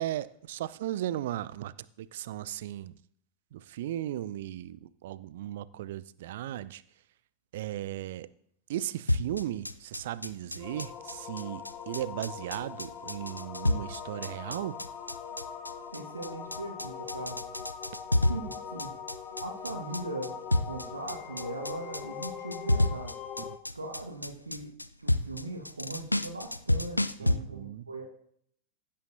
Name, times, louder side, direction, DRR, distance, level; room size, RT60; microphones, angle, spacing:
voice 1, 0.0-3.0 3.5-6.8 7.5-8.3 8.7-14.8 23.4-23.6 27.2-27.9, right 13 dB, 55° right, 0.4 m, -36 dB
sound 1, 9.1-27.4, left 1 dB, 85° left, 0.4 m, -30 dB
sound 2, 10.6-23.6, left 7 dB, 30° left, 1.0 m, -42 dB
voice 2, 15.9-17.4 18.3-18.9 19.4-23.1 23.7-24.7 25.0-28.0, right 2 dB, 80° right, 1.4 m, -39 dB
15.5 x 8.7 x 2.7 m
figure-of-eight pair, 90°, 0 cm